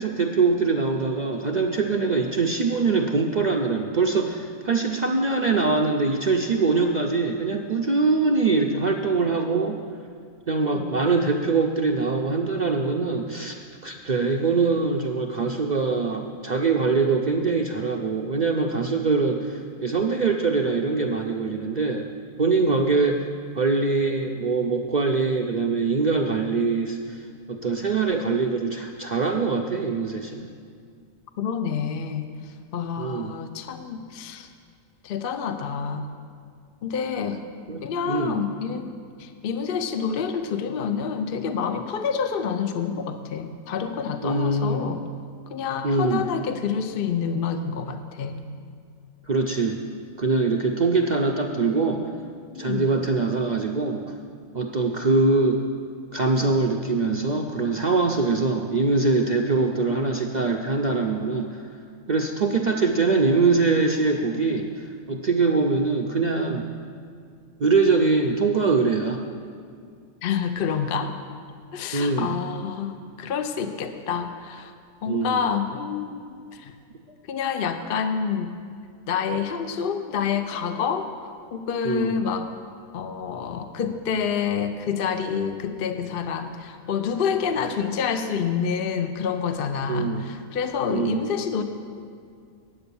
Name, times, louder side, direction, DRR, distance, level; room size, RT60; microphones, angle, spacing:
voice 1, 0.0-9.8 10.5-13.5 13.8-22.1 22.4-23.2 23.6-30.5 33.0-33.4 37.7-38.4 44.2-44.8 45.8-46.3 49.3-49.8 50.2-52.0 52.6-54.1 54.5-55.6 56.1-61.7 62.1-66.7 67.6-69.2 71.9-72.3 75.1-75.4 81.8-82.2 89.9-90.3 90.9-91.3, right 4 dB, 80° right, 1 dB, 0.4 m, -23 dB
voice 2, 31.4-32.2 32.7-34.5 35.0-36.0 36.8-37.4 37.8-38.9 39.2-45.0 45.5-48.3 52.5-53.0 70.2-71.2 71.7-74.7 75.0-76.2 76.5-76.7 77.3-78.5 79.1-81.1 81.5-82.5 82.9-91.6, left 6 dB, 55° left, 8 dB, 0.6 m, -28 dB
9.9 x 7.9 x 6.9 m, 2.3 s
omnidirectional pair, 1.5 m